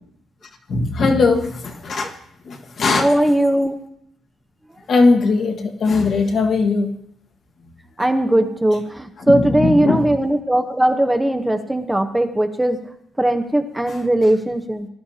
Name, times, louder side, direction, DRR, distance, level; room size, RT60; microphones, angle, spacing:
voice 1, 0.7-2.1 2.5-3.1 4.9-6.9 9.3-10.1, left 3 dB, 55° left, 2 dB, 1.7 m, -19 dB
voice 2, 2.9-3.7 8.0-12.8 13.2-14.9, right 1 dB, 10° right, 6 dB, 1.0 m, -19 dB
19.5 x 11.0 x 2.8 m, 0.73 s
cardioid pair, 90°, 0 cm